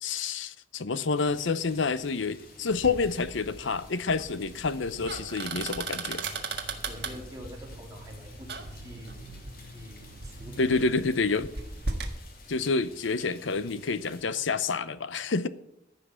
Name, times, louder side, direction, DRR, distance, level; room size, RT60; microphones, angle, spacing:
voice 1, 0.0-6.2 10.6-11.5 12.5-15.5, left 4 dB, 80° left, 0.7 m, -28 dB
sound 1, 1.1-14.2, left 3 dB, 50° left, 2.4 m, -53 dB
sound 2, 1.4-1.7 1.9-2.2 2.5-2.6 3.1-3.4 3.8-4.0 4.5-5.7 6.2-7.2, right 7 dB, 80° right, 2.7 m, -47 dB
sound 3, 2.7-12.2, right 3 dB, 60° right, 1.6 m, -38 dB
voice 2, 6.9-10.8, equal, 20° right, 2.7 m, -46 dB
15.0 x 5.8 x 8.2 m
head